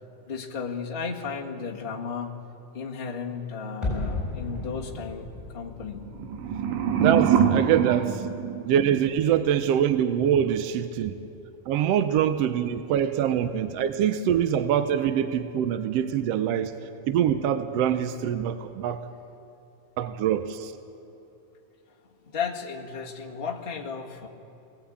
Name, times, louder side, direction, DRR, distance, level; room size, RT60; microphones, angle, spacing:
voice 1, 0.3-2.3 2.7-5.3 5.5-6.1 22.2-24.3, left 6 dB, 25° left, -1 dB, 1.4 m, -34 dB
sound 1, 3.8-8.8 9.0-9.1, left 2 dB, ahead, 7.0 m, -36 dB
sound 2, 6.1-9.2, right 8 dB, 90° right, 2.6 m, -24 dB
voice 2, 6.9-8.3 8.6-11.2 11.7-16.7 17.1-19.0 20.0-20.7, right 9 dB, 75° right, 10 dB, 1.6 m, -24 dB
22.0 x 18.5 x 8.6 m, 2.8 s
omnidirectional pair, 3.4 m